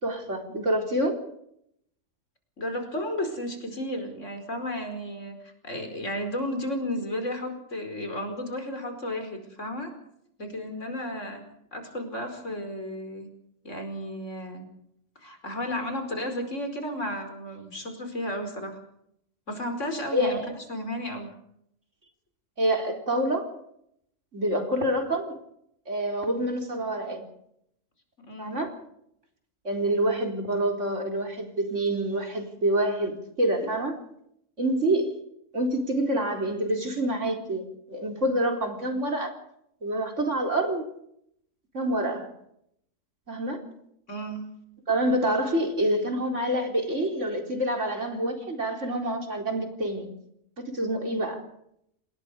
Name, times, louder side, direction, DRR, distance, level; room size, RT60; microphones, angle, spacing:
voice 1, 0.0-1.2 20.1-20.5 22.6-23.5 24.3-25.3 25.9-27.2 28.4-28.7 29.6-34.0 34.6-35.1 35.5-39.3 39.8-40.8 41.7-42.3 43.3-43.7 44.9-50.1 50.6-51.4, right 1 dB, 70° right, 3 dB, 4.5 m, -27 dB
voice 2, 2.6-9.9 10.4-11.4 11.7-13.3 13.6-14.7 15.2-18.8 19.5-20.4 20.7-21.3 28.2-28.6 44.1-44.4, left 1 dB, 70° left, 6 dB, 5.2 m, -33 dB
28.0 x 20.0 x 5.2 m, 0.74 s
omnidirectional pair, 1.3 m